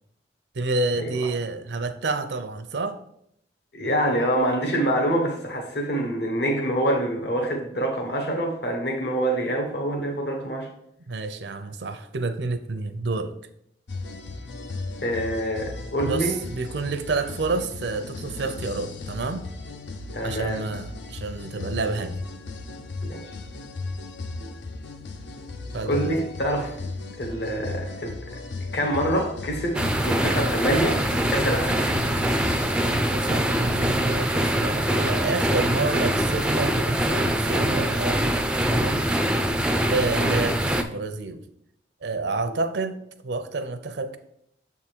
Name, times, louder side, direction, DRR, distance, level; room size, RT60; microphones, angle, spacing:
voice 1, 0.5-3.0 11.1-13.3 16.0-19.4 20.2-22.2 25.7-26.2 32.8-39.0 39.9-41.4 42.0-43.0 43.2-44.2, right 3 dB, 75° right, 9 dB, 0.6 m, -29 dB
voice 2, 3.7-10.7 15.0-16.4 20.1-20.6 23.0-23.3 25.8-26.9 27.2-28.2 28.7-31.0 31.3-31.8, right 1 dB, 65° left, 2 dB, 1.0 m, -26 dB
sound 1, 13.9-33.8, left 3 dB, 85° left, 0.7 m, -36 dB
sound 2, 29.7-40.8, right 1 dB, 5° right, 0.3 m, -23 dB
7.2 x 3.6 x 4.4 m, 0.75 s
head